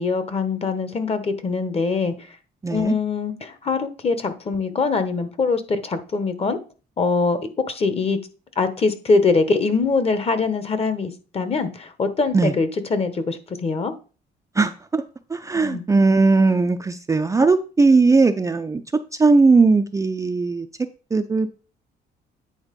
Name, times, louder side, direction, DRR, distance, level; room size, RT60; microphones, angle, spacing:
voice 1, 0.0-2.3 2.7-6.6 7.0-8.2 8.6-13.9 15.5-15.8, left 4 dB, 35° left, 1.1 m, -23 dB
voice 2, 2.6-2.9 12.3-12.5 14.6-15.0 15.3-18.8 19.2-20.7 21.1-21.5, right 3 dB, 15° right, 0.4 m, -18 dB
9.0 x 3.5 x 5.2 m
cardioid pair, 110°, 18 cm